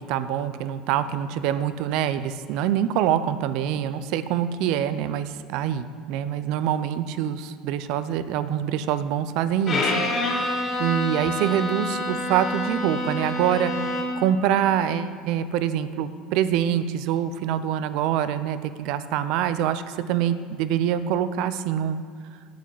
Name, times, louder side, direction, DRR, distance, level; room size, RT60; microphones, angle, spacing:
voice 1, 0.1-9.9 10.8-22.0, right 10 dB, 65° right, 12 dB, 0.7 m, -25 dB
Bowed string instrument, 9.7-14.3, left 1 dB, 40° left, 3.3 m, -27 dB
8.6 x 8.3 x 7.7 m, 2.2 s
hypercardioid pair, 75°, 0 cm